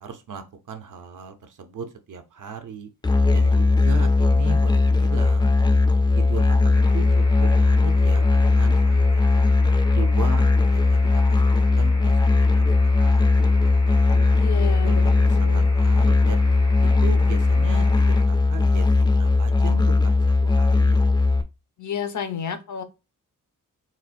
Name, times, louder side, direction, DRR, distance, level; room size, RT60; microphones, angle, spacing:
voice 1, 0.0-2.9 3.3-5.5 6.1-9.5 9.9-13.5 13.8-14.3 14.8-16.4 16.8-20.1 20.4-21.0, right 5 dB, 65° right, 0.7 m, -37 dB
Musical instrument, 3.0-21.4, left 3 dB, 15° left, 0.4 m, -18 dB
sound 1, 6.7-18.2, left 2 dB, 90° left, 1.2 m, -42 dB
voice 2, 14.3-15.0 15.3-15.7 21.8-22.8, left 7 dB, 60° left, 0.6 m, -31 dB
4.2 x 2.4 x 2.5 m
wide cardioid pair, 105°, 33 cm